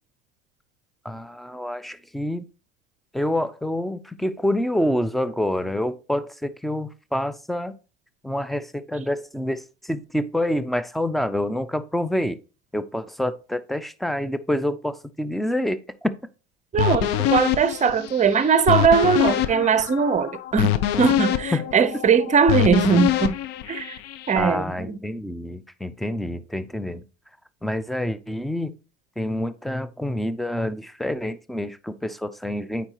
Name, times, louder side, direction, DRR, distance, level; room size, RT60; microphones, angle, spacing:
voice 1, 1.0-2.5 3.1-7.7 8.2-12.4 12.7-16.1 21.5-21.6 24.3-27.0 27.6-28.8 29.2-32.9, left 1 dB, ahead, 0.3 m, -27 dB
voice 2, 16.7-23.4 23.7-24.0 24.3-25.0, right 6 dB, 20° right, 0.7 m, -20 dB
sound 1, 16.8-24.4, left 12 dB, 65° left, 0.7 m, -25 dB
8.8 x 4.1 x 2.9 m
hypercardioid pair, 80°, 33 cm